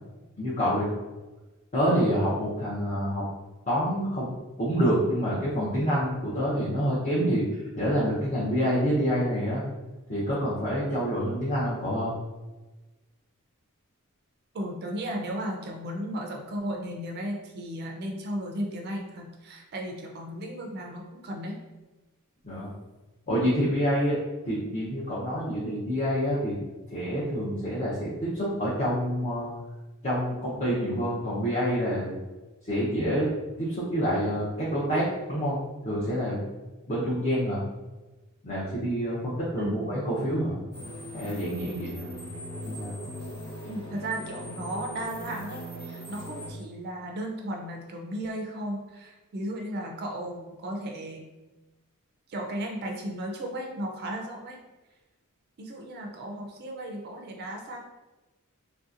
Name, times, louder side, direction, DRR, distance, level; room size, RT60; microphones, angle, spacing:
voice 1, 0.4-0.9 1.7-3.2 3.7-4.3 4.6-9.6 10.1-12.1 22.4-22.7 23.3-24.2 24.4-26.5 26.9-29.5 30.0-32.1 32.6-33.3 33.6-35.6 35.8-36.4 36.9-37.6 38.4-40.6 41.1-42.1 42.6-43.0, equal, 35° left, -8 dB, 0.6 m, -27 dB
voice 2, 14.5-21.6 39.6-40.0 43.6-51.2 52.3-54.6 55.6-57.8, right 1 dB, 45° right, 1 dB, 0.4 m, -35 dB
sound 1, 40.7-46.5, equal, 75° left, 1.2 m, -39 dB
3.2 x 2.7 x 2.4 m, 1.2 s
head